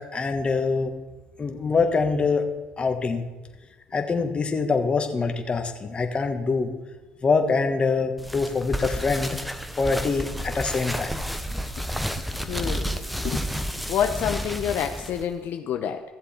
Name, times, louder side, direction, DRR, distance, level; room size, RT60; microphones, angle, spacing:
voice 1, 0.1-0.9 1.4-2.5 2.8-3.2 3.9-6.7 7.2-9.4 9.8-11.1, left 4 dB, 30° left, 5 dB, 1.4 m, -24 dB
sound 1, 8.2-15.2, equal, ahead, 0.8 m, -31 dB
voice 2, 12.5-13.5 13.9-16.0, left 9 dB, 65° left, 5 dB, 0.7 m, -28 dB
14.5 x 7.6 x 4.4 m, 1.2 s
cardioid pair, 100°, 4 cm